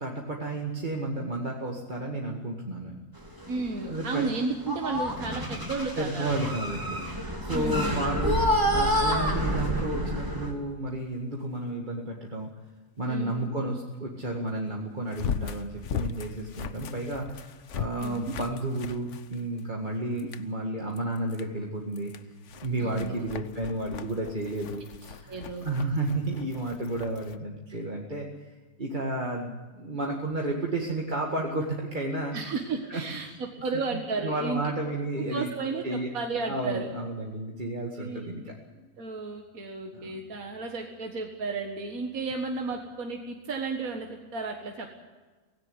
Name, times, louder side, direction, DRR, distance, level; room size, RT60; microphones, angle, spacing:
voice 1, 0.0-3.0 3.8-4.3 6.0-7.0 7.4-8.4 8.7-12.5 13.0-22.1 22.6-25.4 25.6-28.3 28.8-32.5 32.9-33.4 33.9-35.5 35.8-36.1 36.4-38.4 38.7-38.9 39.9-40.2, right 2 dB, 35° right, 0 dB, 2.1 m, -32 dB
sound 1, 3.3-3.7 4.0-4.4 4.7-10.5, equal, 15° right, 3.2 m, -28 dB
voice 2, 3.5-6.4 7.5-8.1 13.1-13.6 18.0-18.3 22.8-23.2 25.3-25.7 32.3-34.6 35.2-36.9 38.0-38.6 39.0-44.9, right 3 dB, 75° right, 3 dB, 2.1 m, -33 dB
sound 2, 15.1-19.8 20.2-20.5 21.0-21.5 21.9-27.4, left 7 dB, 60° left, 1.2 m, -38 dB
18.0 x 16.5 x 9.6 m, 1.3 s
omnidirectional pair, 1.5 m